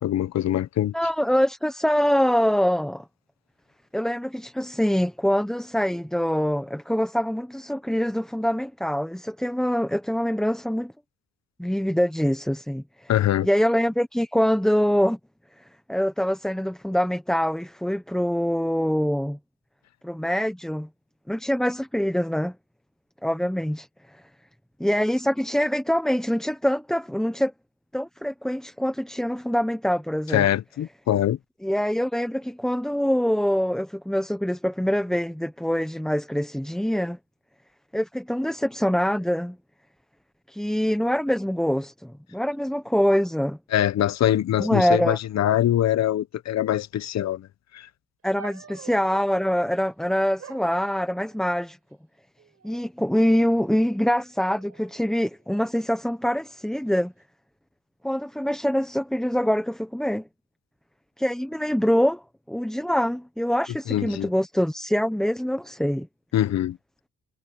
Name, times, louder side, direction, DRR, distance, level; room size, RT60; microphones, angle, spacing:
voice 1, 0.0-0.9 13.1-13.5 30.3-31.4 43.7-47.5 47.7-47.9 63.9-64.3 66.3-66.8, left 12 dB, 60° left, 1.0 m, -23 dB
voice 2, 0.9-3.0 3.9-10.9 11.6-13.1 13.4-15.2 15.9-19.4 20.0-20.9 21.3-22.5 23.2-23.9 24.8-27.5 27.9-30.5 31.6-37.2 37.9-39.6 40.5-43.6 44.6-45.2 48.2-51.8 52.6-57.1 58.0-60.2 61.2-62.2 62.5-66.1, equal, ahead, 1.1 m, -24 dB
sound 1, 48.3-49.6 50.4-51.6 52.4-52.9 53.2-53.8 54.5-55.8 56.6-57.0, right 6 dB, 50° right, 7.8 m, -48 dB
cardioid pair, 90°, 30 cm